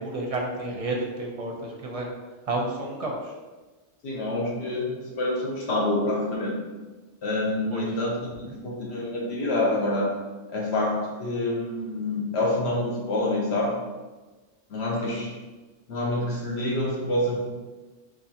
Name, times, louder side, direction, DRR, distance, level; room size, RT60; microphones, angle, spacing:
voice 1, 0.0-2.1 2.5-3.2 7.7-7.8 15.0-15.1, right 2 dB, 40° right, -1 dB, 0.6 m, -30 dB
voice 2, 4.0-6.6 7.2-10.1 10.5-13.8 14.7-15.3 15.9-17.4, left 1 dB, 70° left, -3 dB, 1.0 m, -27 dB
3.9 x 3.1 x 2.8 m, 1.2 s
omnidirectional pair, 1.2 m